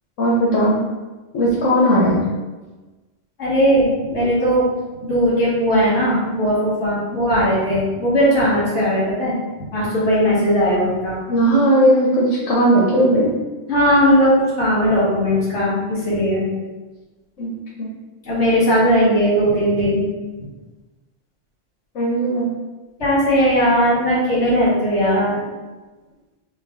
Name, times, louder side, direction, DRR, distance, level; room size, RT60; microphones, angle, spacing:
voice 1, 0.2-0.8 1.3-2.2 11.3-13.3 17.4-17.5 17.8-17.9 21.9-22.5, right 1 dB, 85° left, -5 dB, 1.2 m, -17 dB
voice 2, 3.4-4.7 5.0-11.2 13.7-16.5 18.2-20.1 23.0-25.4, equal, 70° left, -8 dB, 2.1 m, -18 dB
5.2 x 2.3 x 3.8 m, 1.2 s
omnidirectional pair, 1.2 m